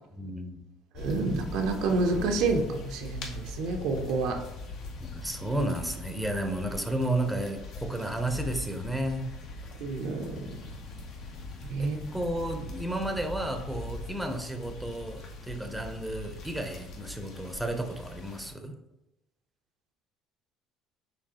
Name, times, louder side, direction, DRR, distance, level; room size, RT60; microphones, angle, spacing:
voice 1, 0.1-0.6 5.1-9.3 11.8-18.8, right 1 dB, 5° right, 5 dB, 0.6 m, -32 dB
sound 1, 0.9-18.5, left 3 dB, 65° left, 0.8 m, -41 dB
voice 2, 1.0-4.4 9.8-10.3 11.7-12.0, right 3 dB, 75° right, 4 dB, 0.6 m, -28 dB
5.2 x 3.3 x 2.8 m, 0.94 s
supercardioid pair, 90°, 0 cm